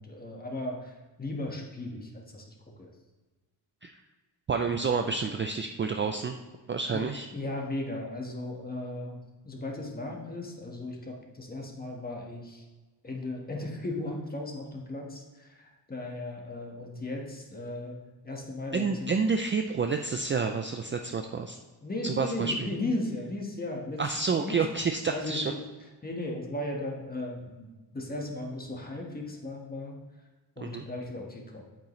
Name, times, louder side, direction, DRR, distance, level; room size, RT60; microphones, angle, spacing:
voice 1, 0.0-2.9 6.9-9.2 9.4-12.6 13.0-19.1 21.8-24.1 24.4-24.6 25.1-25.6 26.0-30.0 30.6-31.7, left 2 dB, 20° left, 0 dB, 1.5 m, -36 dB
voice 2, 4.5-6.4 6.7-7.3 18.7-21.6 22.0-22.7 24.0-25.5 30.6-30.8, right 5 dB, 30° right, 5 dB, 0.4 m, -29 dB
8.6 x 8.4 x 3.2 m, 1.2 s
wide cardioid pair, 135°, 42 cm